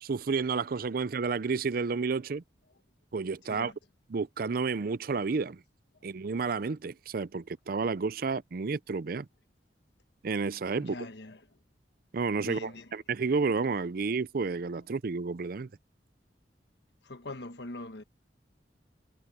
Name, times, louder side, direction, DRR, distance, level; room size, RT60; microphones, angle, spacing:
voice 1, 0.0-2.4 3.1-3.7 4.1-5.6 6.0-9.3 10.2-10.9 12.1-15.7, right 4 dB, 55° right, 0.5 m, -31 dB
voice 2, 10.8-11.4 12.4-12.9 17.0-18.0, left 2 dB, 70° left, 1.3 m, -42 dB
head